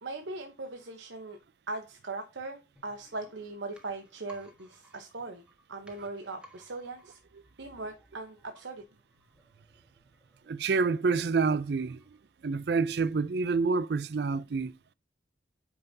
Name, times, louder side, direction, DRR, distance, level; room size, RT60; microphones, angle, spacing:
voice 1, 0.0-1.4 1.7-5.4 5.7-7.2 7.6-8.8, right 3 dB, 75° right, 1.0 m, -39 dB
sound 1, 2.8-12.5 12.8-12.9, right 1 dB, 5° right, 1.4 m, -60 dB
voice 2, 10.5-12.0 12.4-14.7, right 4 dB, 55° right, 0.4 m, -27 dB
9.2 x 5.7 x 2.7 m
head